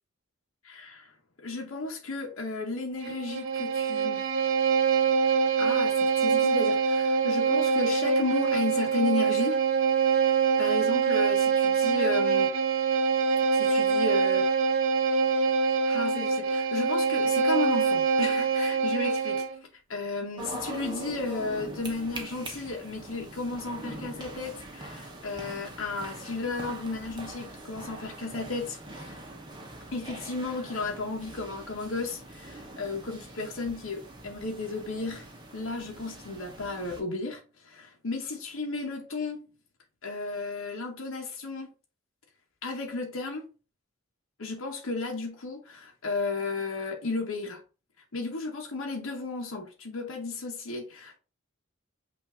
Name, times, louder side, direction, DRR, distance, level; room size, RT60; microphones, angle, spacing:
voice 1, 0.6-1.1 1.4-4.2 5.6-9.6 10.1-12.5 13.4-14.5 15.9-19.5 19.9-29.1 29.9-35.3 35.5-39.5 40.0-41.7 42.6-43.5 44.4-47.6 48.1-51.2, left 3 dB, 75° left, 0.9 m, -33 dB
Bowed string instrument, 3.0-19.6, right 5 dB, 75° right, 0.8 m, -25 dB
sound 1, 20.4-37.0, right 1 dB, 20° right, 0.9 m, -43 dB
5.7 x 2.6 x 3.5 m
head